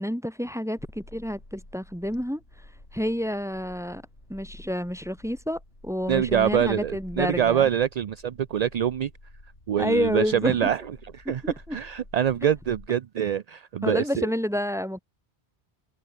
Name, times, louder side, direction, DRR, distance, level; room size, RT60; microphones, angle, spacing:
voice 1, 0.0-2.4 2.9-4.0 4.3-7.6 9.8-10.6 11.4-11.8 13.8-15.0, equal, 5° right, 1.9 m, -29 dB
sound 1, 0.8-12.9, left 1 dB, 75° left, 8.0 m, -49 dB
voice 2, 6.1-9.1 9.7-10.8 11.2-11.4 11.7-14.3, right 9 dB, 50° right, 0.5 m, -25 dB
omnidirectional pair, 1.1 m